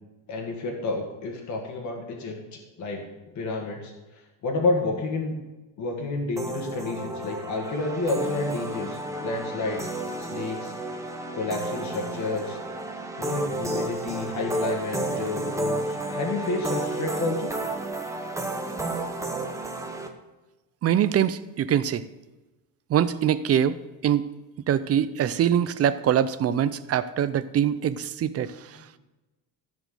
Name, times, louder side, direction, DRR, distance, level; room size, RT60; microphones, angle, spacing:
voice 1, 0.3-3.1 3.4-3.9 4.4-5.3 5.8-9.9 10.2-10.7 11.3-12.6 13.2-17.5, left 3 dB, 40° left, 0 dB, 2.1 m, -30 dB
sound 1, 6.4-20.1, right 2 dB, 5° right, 0.8 m, -31 dB
voice 2, 20.8-22.0 22.9-23.8 24.0-24.3 24.7-28.8, right 9 dB, 35° right, 14 dB, 0.5 m, -23 dB
15.0 x 5.1 x 6.6 m, 1.1 s
cardioid pair, 170°, 44 cm